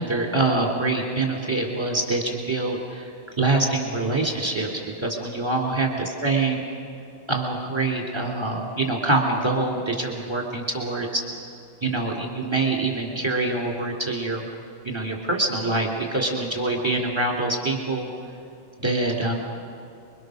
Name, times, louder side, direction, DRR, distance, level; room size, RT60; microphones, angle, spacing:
voice 1, 0.0-3.1 3.4-4.7 5.0-6.6 7.3-11.2 11.8-14.4 14.8-18.1 18.8-19.3, right 2 dB, 10° right, 1 dB, 3.4 m, -25 dB
28.0 x 23.5 x 6.6 m, 2.6 s
omnidirectional pair, 2.4 m